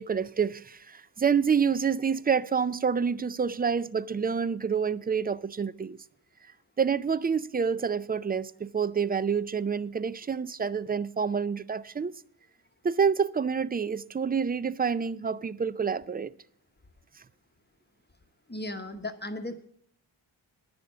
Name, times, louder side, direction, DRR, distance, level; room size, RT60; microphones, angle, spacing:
voice 1, 0.0-6.0 6.8-12.1 12.8-16.3, right 6 dB, 20° right, 0.4 m, -28 dB
voice 2, 18.5-19.7, left 1 dB, 20° left, 1.0 m, -36 dB
10.0 x 7.0 x 8.3 m
cardioid pair, 65°, 49 cm